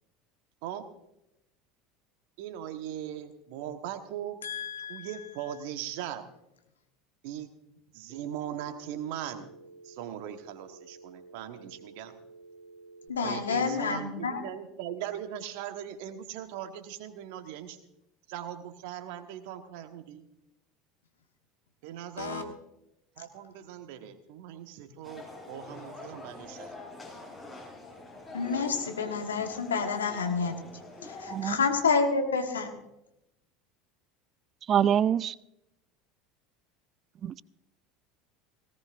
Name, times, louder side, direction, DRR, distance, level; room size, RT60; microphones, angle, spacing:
voice 1, 2.4-4.4 4.9-6.2 7.2-7.5 7.9-9.5 9.8-12.1 13.2-17.8 18.3-20.3 21.8-22.5 23.2-26.7, right 10 dB, 65° right, 8 dB, 1.3 m, -39 dB
voice 2, 4.4-5.1 13.1-14.4 22.2-22.4 28.3-30.6 31.0-32.7, left 5 dB, 85° left, 5 dB, 1.4 m, -29 dB
Telephone, 8.1-13.1, right 2 dB, 5° right, 4.1 m, -52 dB
sound 1, 25.0-31.6, left 2 dB, 25° left, 7.0 m, -45 dB
voice 3, 34.7-35.3 37.2-37.4, right 9 dB, 40° right, 22 dB, 0.4 m, -25 dB
18.5 x 17.5 x 2.6 m, 0.87 s
figure-of-eight pair, 75°, 0 cm